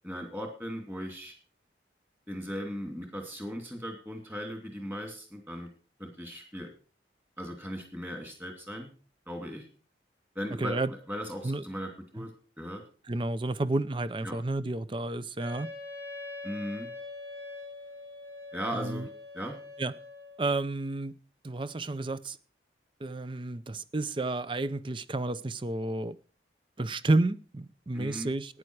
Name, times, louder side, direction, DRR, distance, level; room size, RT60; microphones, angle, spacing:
voice 1, 0.0-1.4 2.3-5.7 6.0-6.7 7.4-8.9 9.3-9.7 10.3-12.3 12.6-12.8 14.2-14.4 16.4-16.9 18.5-19.1 19.3-19.6 27.9-28.3, equal, 10° right, 2.7 m, -38 dB
voice 2, 10.6-10.9 11.4-11.6 12.2-12.3 13.1-15.7 18.7-19.1 19.8-19.9 20.4-21.2 21.4-22.4 23.0-26.2 26.8-28.6, right 2 dB, 25° right, 0.5 m, -31 dB
Wind instrument woodwind instrument, 15.4-20.4, left 2 dB, 65° right, 4.6 m, -43 dB
13.5 x 9.8 x 4.7 m
head